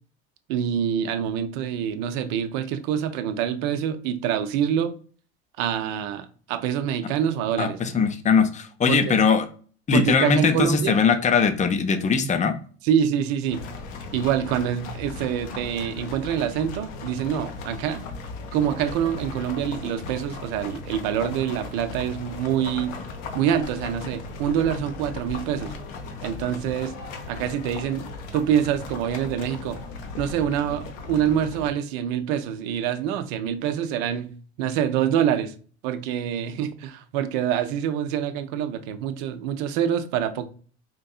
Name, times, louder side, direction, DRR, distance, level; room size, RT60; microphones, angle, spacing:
voice 1, 0.5-4.9 5.6-7.8 8.9-9.1 9.9-11.0 12.8-13.6 14.1-18.0 18.5-23.0 23.3-25.7 26.2-26.9 27.3-28.1 28.3-29.8 30.2-34.3 34.6-35.5 35.8-40.5, right 9 dB, 65° right, 0.6 m, -26 dB
voice 2, 7.6-9.4 9.9-12.5, left 5 dB, 20° left, 0.6 m, -20 dB
sound 1, 13.5-31.7, left 4 dB, 65° left, 0.9 m, -37 dB
4.5 x 2.6 x 2.3 m
hypercardioid pair, 75°, 34 cm